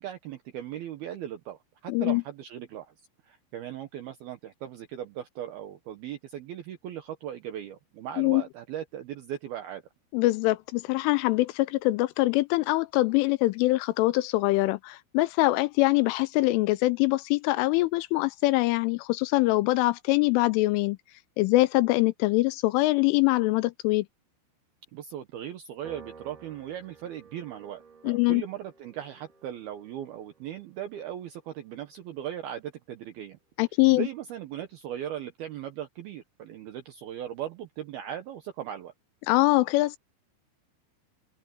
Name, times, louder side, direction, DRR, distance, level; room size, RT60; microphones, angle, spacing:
voice 1, 0.0-2.9 3.2-9.8 24.9-33.4 33.9-38.9, right 10 dB, 80° right, 2.2 m, -38 dB
voice 2, 1.9-2.2 8.2-8.4 10.1-21.0 21.4-24.1 28.0-28.4 33.6-34.1 39.3-40.0, left 20 dB, 85° left, 2.9 m, -23 dB
Piano, 25.8-32.4, right 5 dB, 50° right, 6.4 m, -54 dB
open air
omnidirectional pair, 6.0 m